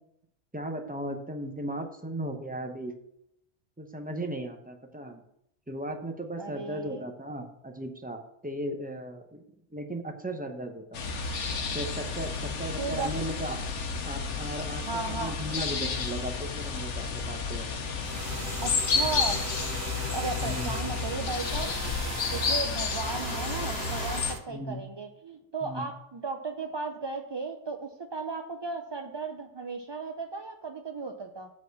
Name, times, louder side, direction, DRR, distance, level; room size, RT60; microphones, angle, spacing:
voice 1, 0.5-2.9 3.8-5.2 5.7-9.4 9.7-11.0 11.7-13.6 14.0-14.8 15.1-17.8 20.4-20.8 24.5-24.8 25.6-25.9, right 1 dB, 10° right, 4 dB, 0.8 m, -36 dB
voice 2, 6.4-7.0 12.8-13.1 14.9-15.3 18.6-19.4 20.1-22.0 22.3-31.5, right 4 dB, 45° right, 3 dB, 0.3 m, -35 dB
sound 1, 10.9-24.3, left 5 dB, 80° left, 1.2 m, -31 dB
sound 2, 18.0-24.4, right 7 dB, 70° right, 1.0 m, -39 dB
7.7 x 4.3 x 6.9 m, 0.77 s
omnidirectional pair, 1.2 m